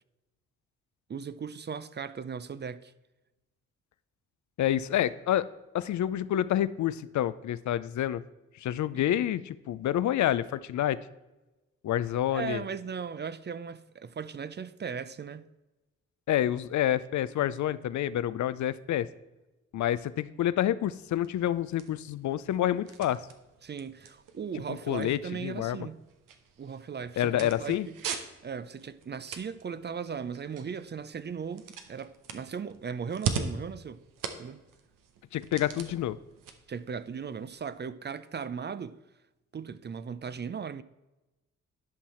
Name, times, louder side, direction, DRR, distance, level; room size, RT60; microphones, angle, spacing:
voice 1, 1.1-2.9 9.1-9.2 12.3-15.4 23.6-26.0 26.6-27.9 28.4-34.0 34.4-34.6 36.7-39.0 39.5-40.8, right 6 dB, 30° right, 0.5 m, -37 dB
voice 2, 4.6-5.5 5.7-8.2 8.6-11.0 11.8-12.6 16.3-19.1 19.7-23.3 24.7-25.8 27.2-27.9 35.3-36.2, left 12 dB, 60° left, 0.5 m, -28 dB
sound 1, 20.9-37.9, right 6 dB, 75° right, 1.0 m, -42 dB
11.0 x 5.5 x 4.4 m
supercardioid pair, 50°, 33 cm